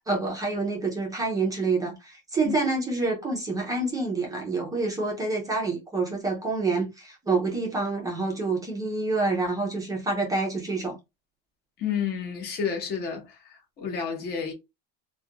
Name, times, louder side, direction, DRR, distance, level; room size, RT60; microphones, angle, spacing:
voice 1, 0.1-11.0, right 3 dB, 10° right, 0.5 m, -27 dB
voice 2, 11.8-14.5, left 7 dB, 35° left, 0.8 m, -30 dB
2.4 x 2.2 x 2.7 m
cardioid pair, 165°, 30 cm